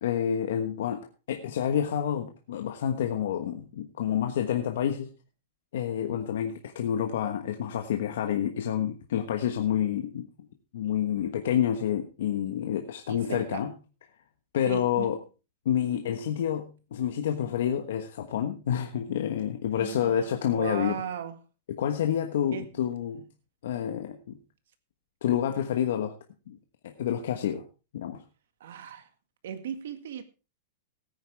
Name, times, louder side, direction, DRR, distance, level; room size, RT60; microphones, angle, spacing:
voice 1, 0.0-5.1 5.7-10.3 10.7-13.7 14.5-15.2 15.6-21.0 21.7-23.2 23.6-24.3 25.2-26.1 26.5-26.6 26.8-27.6 27.9-28.2, left 9 dB, 70° left, 1.3 m, -28 dB
voice 2, 13.1-13.7 14.7-15.1 19.7-21.4 22.5-22.7 28.6-29.1 29.4-30.2, right 8 dB, 80° right, 1.8 m, -37 dB
17.0 x 9.6 x 3.4 m
supercardioid pair, 180°, 0 cm